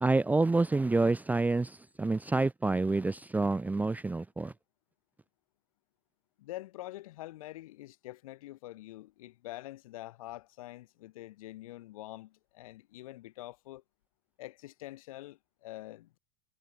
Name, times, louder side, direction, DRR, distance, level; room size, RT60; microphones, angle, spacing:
voice 1, 0.0-4.5, right 3 dB, 10° right, 0.6 m, -28 dB
voice 2, 6.4-13.8 14.4-16.2, left 16 dB, 70° left, 5.4 m, -46 dB
hypercardioid pair, 95°, 18 cm